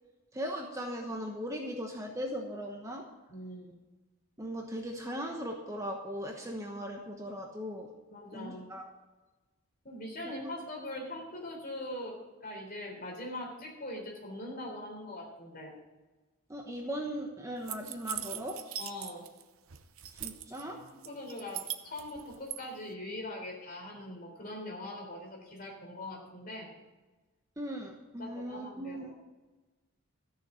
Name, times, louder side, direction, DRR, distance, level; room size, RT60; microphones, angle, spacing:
voice 1, 0.3-3.0 4.4-7.9 8.3-8.8 16.5-18.6 20.2-20.8 27.6-29.1, equal, 15° right, 1 dB, 1.1 m, -38 dB
voice 2, 3.3-3.7 8.1-8.6 9.8-12.2 12.4-15.8 18.8-19.2 20.9-26.7 28.2-29.2, left 1 dB, 40° left, 0 dB, 3.6 m, -42 dB
sound 1, 17.7-19.4 19.7-20.6 21.0-22.6, right 12 dB, 70° right, 0.8 m, -40 dB
13.5 x 6.7 x 8.3 m, 1.2 s
head